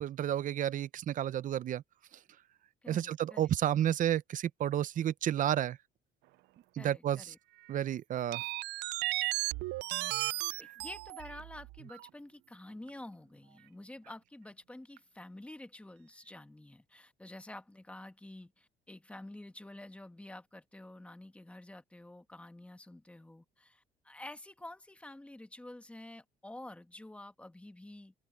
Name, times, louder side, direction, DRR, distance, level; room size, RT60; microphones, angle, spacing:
voice 1, 0.0-1.8 2.9-5.8 6.8-7.2 7.7-8.4, right 11 dB, 50° right, 0.7 m, -31 dB
voice 2, 2.8-3.5 4.9-5.0 6.8-7.4 10.4-28.1, left 1 dB, 5° left, 1.4 m, -49 dB
sound 1, 7.2-7.3 8.3-12.1 12.9-13.0 15.0-15.1, right 19 dB, 85° right, 0.5 m, -35 dB
open air
cardioid pair, 110°, 17 cm